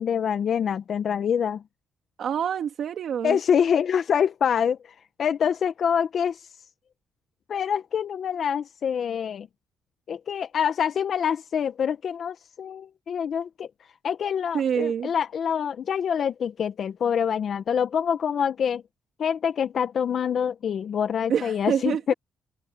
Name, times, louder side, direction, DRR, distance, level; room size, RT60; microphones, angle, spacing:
voice 1, 0.0-1.6 3.2-4.9 5.2-6.5 7.5-9.5 10.1-13.7 14.0-18.8 19.2-22.1, left 8 dB, 55° left, 1.0 m, -25 dB
voice 2, 2.2-3.4 14.5-15.1 21.3-22.1, right 8 dB, 65° right, 1.8 m, -26 dB
cardioid pair, 90°, 0 cm